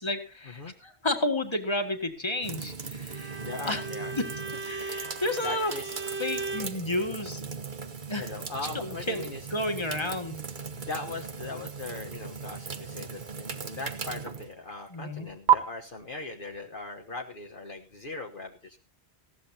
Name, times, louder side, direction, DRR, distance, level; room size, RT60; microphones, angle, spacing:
voice 1, 0.0-3.8 4.1-4.3 4.5-5.7 6.2-7.5 8.1-8.3 8.7-10.4 14.9-15.3, left 1 dB, 25° left, 6 dB, 1.9 m, -31 dB
sound 1, 2.4-15.5, right 8 dB, 50° right, 1.3 m, -35 dB
Bowed string instrument, 3.1-6.8, right 3 dB, 75° right, 1.7 m, -37 dB
voice 2, 3.4-4.1 5.4-6.2 8.2-9.4 10.7-18.8, left 3 dB, 50° left, 2 dB, 1.3 m, -39 dB
19.0 x 15.5 x 2.8 m, 0.31 s
omnidirectional pair, 1.1 m